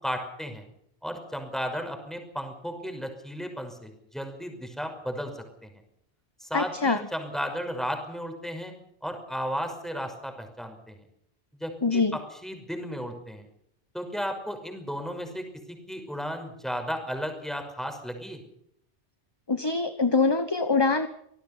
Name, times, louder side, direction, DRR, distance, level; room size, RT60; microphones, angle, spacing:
voice 1, 0.0-0.6 1.0-5.7 6.4-8.7 9.0-11.0 11.6-13.5 13.9-18.4, equal, ahead, 5 dB, 5.8 m, -34 dB
voice 2, 6.5-7.0 11.8-12.2 19.5-21.1, left 4 dB, 25° left, 9 dB, 1.3 m, -24 dB
26.5 x 19.0 x 5.7 m, 0.73 s
omnidirectional pair, 1.1 m